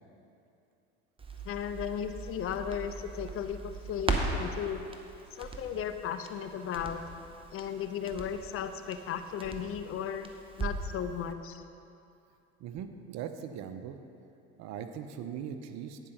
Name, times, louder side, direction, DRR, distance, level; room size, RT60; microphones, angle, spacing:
Crackle, 1.2-11.0 11.3-11.4, right 3 dB, 15° right, 0.9 m, -39 dB
voice 1, 1.4-4.8 5.3-7.0 7.5-10.3 10.6-11.6, left 8 dB, 40° left, 9 dB, 0.6 m, -35 dB
voice 2, 12.6-14.0 14.6-16.0, right 8 dB, 50° right, 8 dB, 0.7 m, -40 dB
9.6 x 4.9 x 5.8 m, 2.6 s
hypercardioid pair, 80°, 34 cm